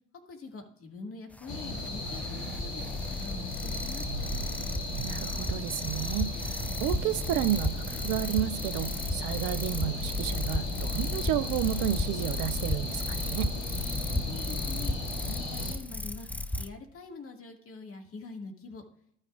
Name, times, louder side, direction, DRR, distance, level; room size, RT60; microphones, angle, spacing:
voice 1, 0.3-4.3 14.3-14.9 15.3-16.3 16.6-18.8, left 4 dB, 40° left, 2.0 m, -44 dB
sound 1, 1.3-16.7, left 2 dB, 5° left, 0.5 m, -34 dB
sound 2, 1.5-15.7, left 2 dB, 65° left, 2.5 m, -36 dB
voice 2, 5.0-13.5, right 13 dB, 60° right, 0.7 m, -32 dB
15.0 x 6.5 x 2.5 m
hypercardioid pair, 65°, 34 cm